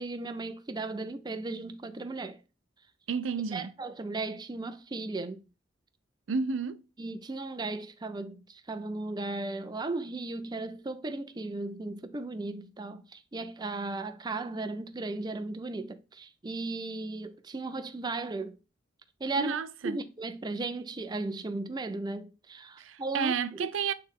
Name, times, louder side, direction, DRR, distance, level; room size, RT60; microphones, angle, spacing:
voice 1, 0.0-2.4 3.5-5.4 7.0-18.6 19.2-19.6 19.8-23.3 23.6-23.7, right 3 dB, 20° right, 0.5 m, -36 dB
voice 2, 3.1-3.7 6.3-6.8 19.4-20.0 22.8-23.9, right 5 dB, 90° right, 0.5 m, -31 dB
8.6 x 3.2 x 3.5 m
head